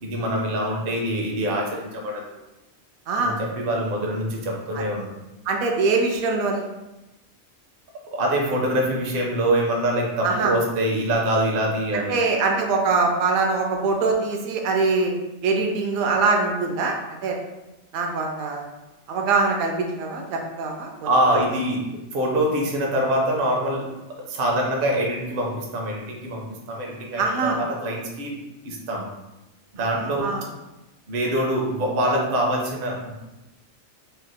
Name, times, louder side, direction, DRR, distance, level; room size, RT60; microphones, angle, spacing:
voice 1, 0.0-2.3 3.2-5.1 8.1-12.2 21.0-21.8 22.1-23.8 24.2-28.4 28.6-29.1 29.7-30.3 31.1-33.1, right 1 dB, 55° right, -1 dB, 0.7 m, -24 dB
voice 2, 3.1-3.4 4.7-4.8 5.5-6.7 10.2-10.5 11.9-15.1 15.4-17.0 17.2-17.4 17.9-18.7 19.1-21.4 27.2-27.6 29.8-30.4, right 4 dB, 90° right, 1 dB, 1.0 m, -23 dB
3.2 x 2.7 x 2.2 m, 1.0 s
omnidirectional pair, 1.4 m